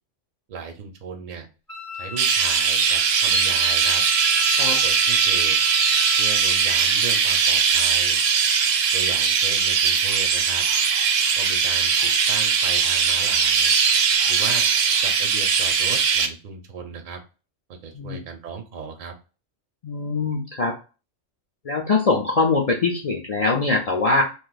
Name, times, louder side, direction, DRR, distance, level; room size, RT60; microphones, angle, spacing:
voice 1, 0.5-1.5 1.9-4.0 4.8-5.6 6.2-8.2 8.9-10.6 11.4-13.7 14.3-14.7 15.0-17.2 17.8-19.1, right 6 dB, 55° right, 4 dB, 0.5 m, -36 dB
Wind instrument woodwind instrument, 1.7-6.8, left 1 dB, 20° left, 0.6 m, -33 dB
Chirp tweet, 2.2-16.3, right 6 dB, 75° right, 0.9 m, -20 dB
voice 2, 19.8-20.8 21.6-24.2, left 3 dB, 70° left, -1 dB, 0.3 m, -22 dB
2.6 x 2.3 x 3.8 m, 0.33 s
omnidirectional pair, 1.3 m